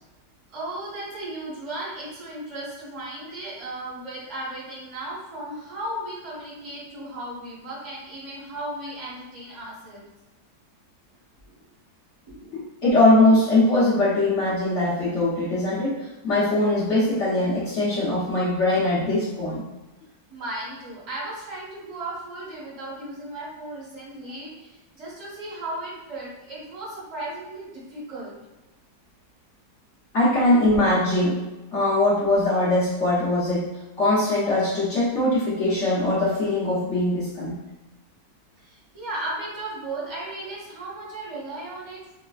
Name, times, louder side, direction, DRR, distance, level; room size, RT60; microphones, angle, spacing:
voice 1, 0.5-10.0 11.4-11.7 12.3-12.5 20.3-28.3 38.6-42.1, right 1 dB, 25° right, -8 dB, 0.8 m, -35 dB
voice 2, 12.5-15.9 16.2-19.7 30.1-31.4 31.7-33.7 34.0-37.6, left 2 dB, 55° left, -9 dB, 1.0 m, -21 dB
3.2 x 2.1 x 2.3 m, 1.1 s
omnidirectional pair, 1.8 m